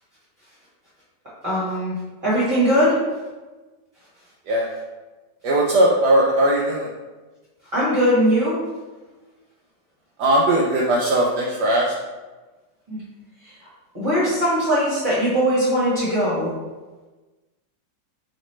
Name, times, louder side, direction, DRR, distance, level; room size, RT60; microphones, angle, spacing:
voice 1, 1.4-1.9 2.2-3.0 7.7-8.6 12.9-13.0 13.4-13.5 13.9-16.5, equal, 30° right, -12 dB, 1.4 m, -20 dB
voice 2, 5.4-6.9 10.2-11.9, right 1 dB, 70° right, -4 dB, 1.1 m, -19 dB
3.2 x 3.2 x 4.2 m, 1.2 s
omnidirectional pair, 1.9 m